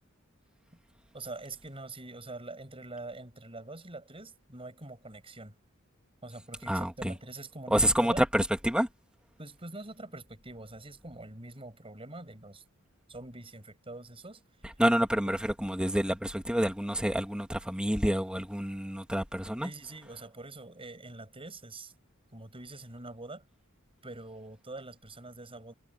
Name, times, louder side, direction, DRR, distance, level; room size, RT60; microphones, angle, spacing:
voice 1, 1.1-5.5 6.2-8.2 9.4-12.6 13.1-14.4 15.2-15.3 19.6-21.9 22.3-23.5 24.0-25.7, right 2 dB, 25° right, 6.5 m, -44 dB
voice 2, 6.7-7.1 7.7-8.9 14.8-19.7, equal, 5° right, 2.3 m, -28 dB
head